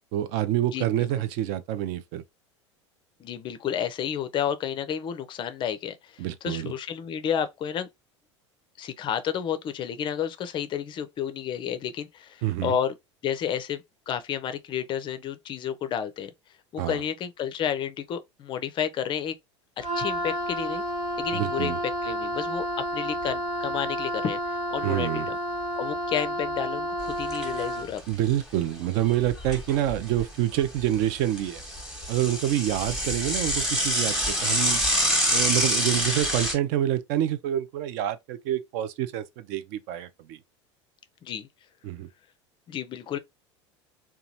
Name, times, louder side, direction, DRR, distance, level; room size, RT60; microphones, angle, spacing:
voice 1, 0.1-2.2 6.2-6.7 12.4-12.8 16.8-17.0 21.3-21.8 24.8-25.3 28.1-31.6 32.1-34.8 35.3-40.4 41.8-42.1, right 12 dB, 50° right, 0.4 m, -27 dB
voice 2, 0.7-1.1 3.2-7.9 8.8-12.9 13.2-16.3 16.7-19.4 19.8-20.8 21.2-25.4 25.8-28.0 41.2-41.5 42.7-43.2, left 8 dB, 30° left, 0.4 m, -31 dB
Wind instrument woodwind instrument, 19.8-28.0, equal, 80° right, 1.2 m, -30 dB
Bicycle / Mechanisms, 27.0-27.6 28.0-28.1 28.3-28.4 29.1-30.3 30.6-36.5, equal, 5° right, 1.0 m, -26 dB
2.8 x 2.2 x 2.6 m
figure-of-eight pair, 80°, 15 cm